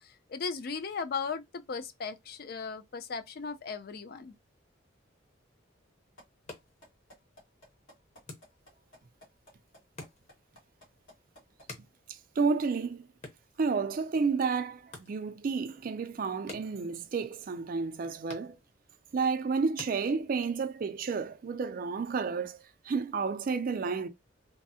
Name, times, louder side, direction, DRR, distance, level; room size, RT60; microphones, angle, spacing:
voice 1, 0.0-4.3, left 5 dB, 50° left, 0.4 m, -37 dB
sound 1, 6.2-6.3 6.5-11.7, equal, 85° left, 1.7 m, -55 dB
sound 2, 6.2-20.7, left 2 dB, 35° left, 0.8 m, -53 dB
voice 2, 12.1-13.1 13.6-18.6 19.1-22.6 22.8-24.1, right 5 dB, 45° right, 0.3 m, -31 dB
3.4 x 2.0 x 2.7 m
head